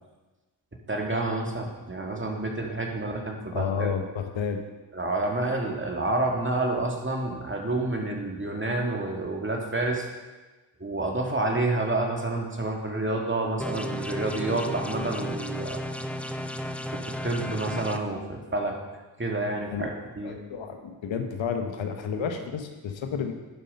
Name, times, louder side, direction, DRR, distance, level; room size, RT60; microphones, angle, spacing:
voice 1, 0.9-3.9 4.9-10.1 10.8-15.8 16.9-18.8 19.2-20.4, right 2 dB, 25° right, 1 dB, 2.2 m, -29 dB
voice 2, 3.5-4.6 19.7-19.9 20.2-23.3, left 6 dB, 70° left, 5 dB, 1.1 m, -31 dB
sound 1, 13.6-18.0, equal, 5° left, 0.7 m, -33 dB
11.5 x 5.4 x 5.4 m, 1.2 s
supercardioid pair, 45°, 48 cm